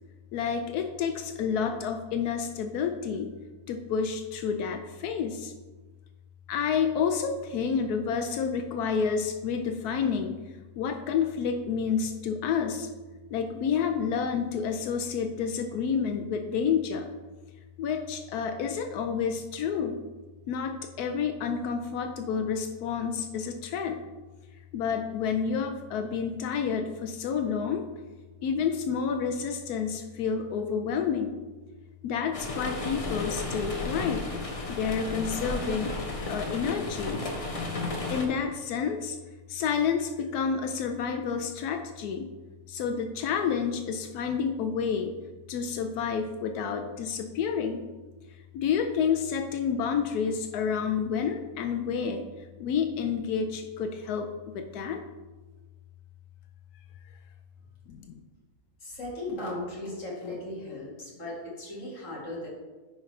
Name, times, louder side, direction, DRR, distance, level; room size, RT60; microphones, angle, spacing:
voice 1, 0.3-3.3 3.7-5.5 6.5-10.4 10.8-12.9 13.3-17.1 17.8-20.0 20.5-24.0 24.7-27.8 28.4-31.4 32.0-34.3 34.7-36.0 36.3-37.2 38.1-39.2 39.5-42.3 42.7-45.1 45.5-47.8 48.5-52.2 52.6-54.3 54.5-55.0 57.9-58.2, left 6 dB, 80° left, 6 dB, 1.1 m, -29 dB
sound 1, 32.3-38.3, left 2 dB, 30° left, 0.7 m, -33 dB
voice 2, 58.8-62.5, left 1 dB, 55° left, -5 dB, 2.4 m, -37 dB
9.7 x 5.1 x 3.2 m, 1.3 s
omnidirectional pair, 1.6 m